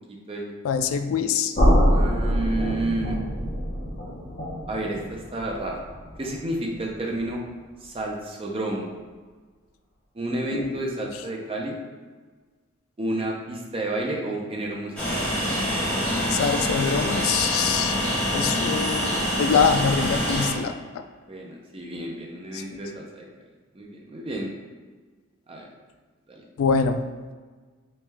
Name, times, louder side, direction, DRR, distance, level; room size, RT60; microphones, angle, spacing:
voice 1, 0.1-0.5 1.9-3.2 4.7-5.8 6.2-7.4 7.8-8.9 10.1-11.8 13.0-15.3 21.3-23.3 23.7-24.5 25.5-25.7 26.3-26.4, right 1 dB, 25° right, -1 dB, 0.5 m, -30 dB
voice 2, 0.6-1.5 10.5-10.8 16.3-18.0 18.3-21.0 22.5-22.8 26.6-27.0, left 6 dB, 85° left, 8 dB, 0.3 m, -24 dB
sound 1, 1.5-7.4, equal, 40° left, 0.9 m, -25 dB
Train, 15.0-20.5, equal, 5° left, 1.4 m, -25 dB
3.2 x 3.2 x 3.4 m, 1.4 s
head